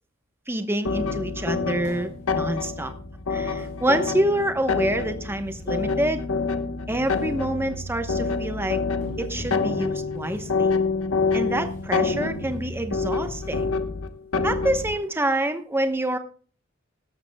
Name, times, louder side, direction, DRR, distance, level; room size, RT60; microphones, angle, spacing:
voice 1, 0.5-2.9 3.3-6.2 6.9-8.8 9.2-10.7 11.3-13.7 14.4-16.2, right 1 dB, 10° right, 7 dB, 0.9 m, -27 dB
sound 1, 0.8-15.0, left 4 dB, 85° left, 1.1 m, -27 dB
sound 2, 1.8-2.5 3.6-4.5 5.4-6.1 6.7-7.6 7.9-8.2 9.0-9.7 10.1-10.7 11.5-11.9 12.3-12.6 13.1-14.0, equal, 35° left, 7.6 m, -44 dB
17.0 x 13.0 x 2.2 m, 0.40 s
head